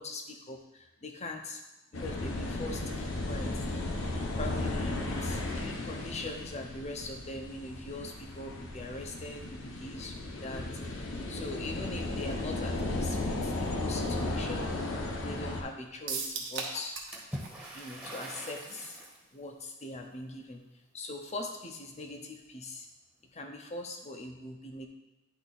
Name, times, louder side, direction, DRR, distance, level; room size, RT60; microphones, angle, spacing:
voice 1, 0.0-1.6 1.9-3.6 4.4-14.7 15.2-17.0 17.7-19.0 19.3-20.6 20.9-22.9 23.3-24.9, left 2 dB, 35° left, 3 dB, 0.8 m, -41 dB
sound 1, 1.9-15.6, left 2 dB, 70° left, 1.0 m, -35 dB
sound 2, 16.1-17.2 17.4-17.5 17.9-18.0, right 5 dB, 65° right, 1.1 m, -35 dB
Water / Splash splatter, 17.1-19.2, right 1 dB, 5° right, 1.2 m, -42 dB
10.0 x 3.6 x 4.1 m, 1.0 s
head